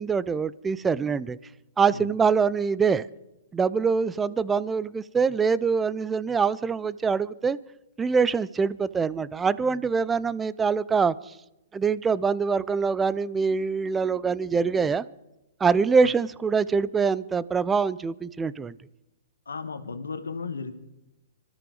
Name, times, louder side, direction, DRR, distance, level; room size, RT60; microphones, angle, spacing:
voice 1, 0.0-1.4 1.8-3.1 3.5-7.6 8.0-11.3 11.7-15.0 15.6-18.7, right 5 dB, 15° right, 18 dB, 0.5 m, -24 dB
voice 2, 19.5-20.7, left 4 dB, 90° left, 7 dB, 1.3 m, -34 dB
25.0 x 13.0 x 3.9 m, 0.94 s
hypercardioid pair, 125°, 0 cm